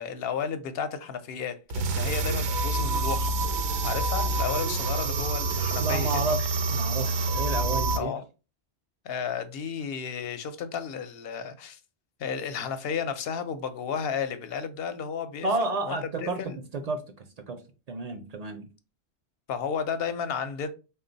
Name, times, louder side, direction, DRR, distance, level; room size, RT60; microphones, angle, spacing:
voice 1, 0.0-6.4 7.9-8.2 9.0-11.8 12.2-15.5 15.8-16.6 19.5-20.7, left 6 dB, 70° left, 0.8 m, -33 dB
sound 1, 1.7-8.0, right 3 dB, 85° right, 0.9 m, -27 dB
voice 2, 5.8-8.1 15.4-16.4 16.7-17.6 17.9-18.7, right 3 dB, 50° right, 0.5 m, -31 dB
3.7 x 2.3 x 3.8 m
omnidirectional pair, 1.1 m